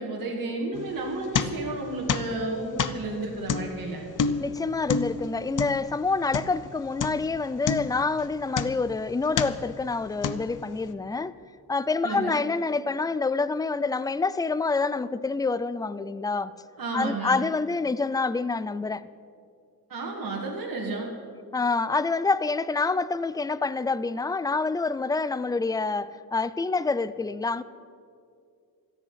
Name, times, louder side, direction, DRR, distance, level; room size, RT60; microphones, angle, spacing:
voice 1, 0.0-4.0 12.0-12.4 16.8-17.4 19.9-21.1, right 2 dB, 60° right, 2.3 m, -32 dB
sound 1, 0.7-1.8 2.1-6.7 7.0-7.4 7.7-9.0 9.3-9.8 10.2-10.8, left 6 dB, 55° left, 0.8 m, -29 dB
voice 2, 4.4-11.4 11.7-16.5 16.9-19.1 21.5-27.6, left 3 dB, 10° left, 0.4 m, -27 dB
17.5 x 13.5 x 5.7 m
wide cardioid pair, 125°, 37 cm